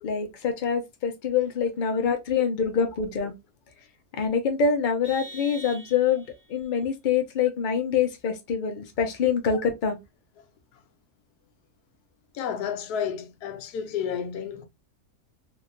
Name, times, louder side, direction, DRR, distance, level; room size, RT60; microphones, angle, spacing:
voice 1, 0.0-3.3 4.1-6.2 6.5-10.0, left 6 dB, 65° left, 0.5 m, -25 dB
Vehicle horn car horn honking, 5.0-6.4, equal, 55° right, 1.0 m, -43 dB
voice 2, 12.3-14.7, left 7 dB, 80° left, 1.1 m, -31 dB
2.8 x 2.6 x 2.5 m
omnidirectional pair, 1.7 m